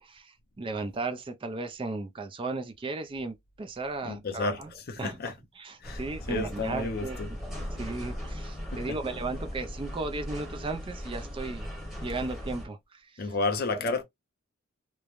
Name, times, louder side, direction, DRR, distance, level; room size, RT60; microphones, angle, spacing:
voice 1, 0.0-4.7 5.0-7.2 7.8-11.7 12.0-13.2 13.7-14.0, right 3 dB, 25° right, 0.4 m, -36 dB
voice 2, 4.0-4.6 4.9-5.3 5.8-6.0 6.3-7.3 8.7-9.0 13.2-14.0, left 3 dB, 45° left, 0.6 m, -31 dB
sound 1, 5.8-12.7, equal, ahead, 1.0 m, -38 dB
3.1 x 2.1 x 2.4 m
head